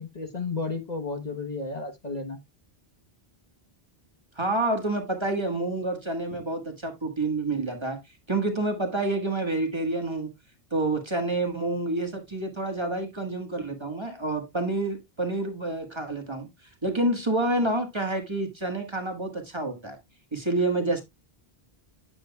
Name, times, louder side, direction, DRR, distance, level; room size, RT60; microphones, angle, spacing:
voice 1, 0.0-2.4, left 3 dB, 45° left, 1.2 m, -33 dB
voice 2, 4.4-8.0 8.3-10.3 10.7-16.5 16.8-20.0 20.3-21.0, right 2 dB, 25° right, 1.5 m, -28 dB
9.2 x 6.9 x 2.3 m
omnidirectional pair, 1.0 m